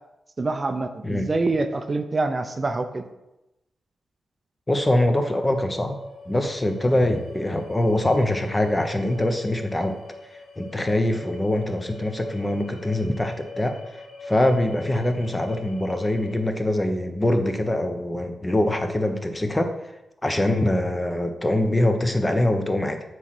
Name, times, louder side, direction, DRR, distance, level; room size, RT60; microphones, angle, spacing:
voice 1, 0.4-3.0, right 3 dB, 35° right, 8 dB, 0.5 m, -25 dB
voice 2, 4.7-6.0 6.3-10.0 10.6-19.7 20.2-23.0, left 1 dB, 20° left, 6 dB, 0.8 m, -23 dB
sound 1, 5.2-16.4, left 2 dB, 80° left, 1.4 m, -42 dB
7.8 x 3.2 x 5.9 m, 0.95 s
cardioid pair, 85°, 0 cm